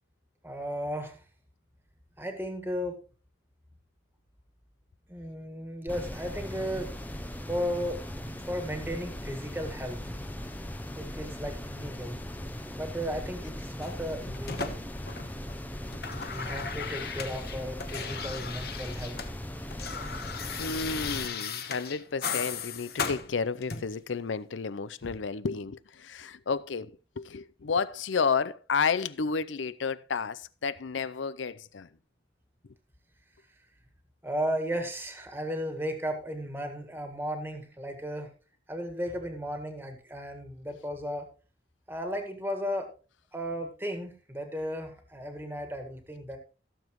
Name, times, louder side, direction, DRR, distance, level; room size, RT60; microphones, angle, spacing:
voice 1, 0.4-1.2 2.2-3.0 5.1-6.9 7.5-10.2 10.9-12.2 12.8-14.8 16.3-19.3 34.2-38.3 38.7-41.3 41.9-42.9 43.3-46.4, equal, 10° right, 1.7 m, -35 dB
sound 1, 5.9-21.3, left 1 dB, 10° left, 0.6 m, -39 dB
sound 2, 13.8-15.5 15.8-19.3 19.6-24.0 25.0-25.2, left 6 dB, 55° left, 1.0 m, -37 dB
voice 2, 20.6-31.9, left 5 dB, 80° left, 0.6 m, -31 dB
16.0 x 7.1 x 3.1 m
head